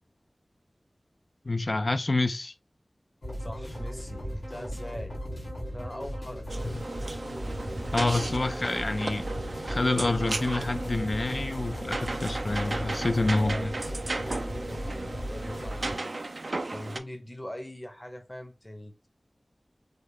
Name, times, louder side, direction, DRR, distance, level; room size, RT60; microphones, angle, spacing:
voice 1, 1.4-2.5 6.6-6.8 7.9-9.3 9.6-13.7, left 2 dB, 65° left, 0.3 m, -27 dB
sound 1, 3.2-16.0, equal, 90° left, 2.0 m, -37 dB
voice 2, 3.4-5.2 5.7-6.8 13.2-19.1, left 1 dB, 25° left, 0.8 m, -42 dB
sound 2, 6.5-17.0, right 2 dB, 75° right, 0.3 m, -35 dB
3.3 x 2.3 x 3.5 m
wide cardioid pair, 45°, 0 cm